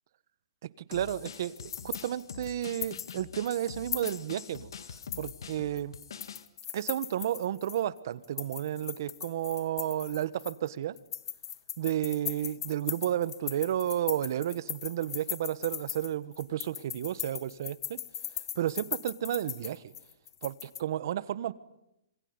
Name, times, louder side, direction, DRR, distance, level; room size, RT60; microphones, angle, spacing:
voice 1, 0.6-4.7 5.2-6.0 6.7-11.0 11.8-18.0 18.5-19.9 20.4-21.5, right 11 dB, 50° right, 17 dB, 1.2 m, -32 dB
sound 1, 0.9-6.5, left 7 dB, 75° left, 1.9 m, -45 dB
sound 2, 1.3-3.1 3.4-3.5 3.9-4.6 5.0-7.8 8.2-10.7 11.0-20.8, left 10 dB, 60° left, 1.1 m, -39 dB
26.5 x 23.0 x 9.7 m, 0.85 s
hypercardioid pair, 160°, 2 cm